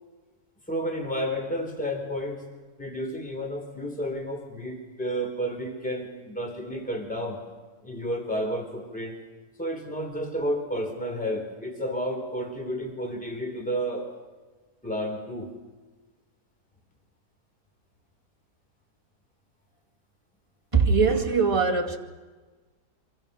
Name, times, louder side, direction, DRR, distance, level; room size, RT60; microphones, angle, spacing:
voice 1, 0.7-2.5 2.8-7.4 7.8-9.2 9.6-14.1 14.8-15.5, equal, 5° left, 3 dB, 3.6 m, -31 dB
voice 2, 20.7-22.0, right 5 dB, 20° right, -1 dB, 2.5 m, -21 dB
27.0 x 25.0 x 6.8 m, 1.3 s
omnidirectional pair, 1.7 m